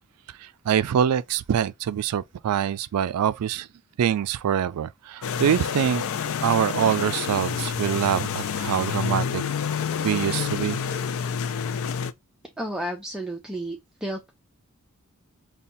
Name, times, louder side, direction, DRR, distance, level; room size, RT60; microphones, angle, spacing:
voice 1, 0.4-3.7 4.0-6.0 6.4-9.4 10.0-10.8, right 9 dB, 80° right, 0.3 m, -24 dB
sound 1, 5.2-12.1, left 7 dB, 65° left, 0.4 m, -28 dB
voice 2, 12.6-14.3, right 1 dB, 5° right, 0.5 m, -32 dB
5.4 x 2.3 x 2.6 m
head